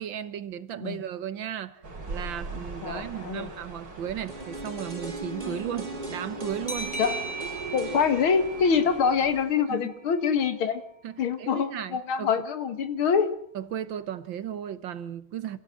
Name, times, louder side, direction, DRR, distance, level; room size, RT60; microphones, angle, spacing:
voice 1, 0.0-1.8 2.1-7.0 9.7-9.8 11.0-12.3 13.6-15.6, right 9 dB, 70° right, 1.8 m, -35 dB
sound 1, 1.8-9.5, right 3 dB, 45° right, 3.7 m, -42 dB
voice 2, 2.8-3.5 5.5-5.6 7.0-7.2 7.7-10.8 11.2-13.3, left 6 dB, 80° left, 2.5 m, -25 dB
sound 2, 4.3-10.2 10.5-10.6, right 2 dB, 20° right, 2.9 m, -38 dB
sound 3, 6.7-10.0, right 3 dB, 15° left, 2.1 m, -38 dB
26.5 x 16.5 x 7.6 m
omnidirectional pair, 2.2 m